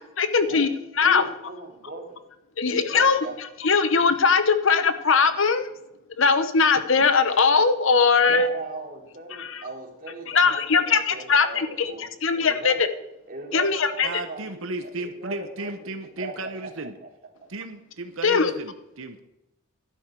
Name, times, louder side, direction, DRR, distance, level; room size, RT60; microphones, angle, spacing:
voice 1, 0.2-0.7 1.0-1.2 2.6-3.2 3.6-5.7 6.2-8.5 9.3-9.6 10.3-11.9 12.2-12.7 13.5-14.2 18.2-18.5, left 5 dB, 60° left, 11 dB, 0.9 m, -20 dB
voice 2, 1.0-2.2 2.7-3.3 8.3-12.1 12.3-12.9 13.3-15.9 16.2-16.7, right 2 dB, 40° right, -1 dB, 3.3 m, -38 dB
voice 3, 14.0-16.9 17.5-19.2, right 2 dB, 70° right, 8 dB, 0.9 m, -34 dB
12.0 x 10.5 x 4.7 m, 0.93 s
head